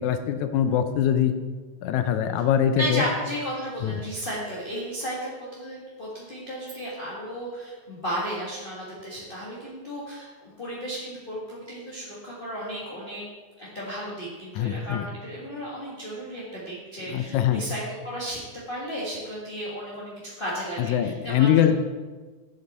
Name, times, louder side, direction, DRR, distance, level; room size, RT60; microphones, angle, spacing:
voice 1, 0.0-1.3 1.8-3.0 3.8-4.0 14.6-15.1 17.1-17.7 20.8-21.7, left 9 dB, 80° left, 8 dB, 1.9 m, -23 dB
voice 2, 2.8-13.2 13.6-18.4 18.7-21.7, equal, 25° left, -7 dB, 1.2 m, -34 dB
7.9 x 7.7 x 4.2 m, 1.4 s
omnidirectional pair, 3.4 m